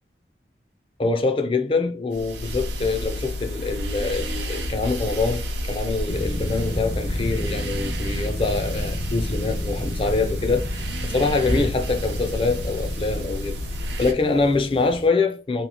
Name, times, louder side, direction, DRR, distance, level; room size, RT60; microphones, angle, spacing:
voice 1, 1.0-13.6 14.0-15.7, left 3 dB, 30° left, 0.3 m, -24 dB
sound 1, 2.1-14.1, left 1 dB, 85° right, 0.6 m, -30 dB
sound 2, 6.1-15.1, equal, 80° left, 1.2 m, -33 dB
2.9 x 2.4 x 2.8 m
head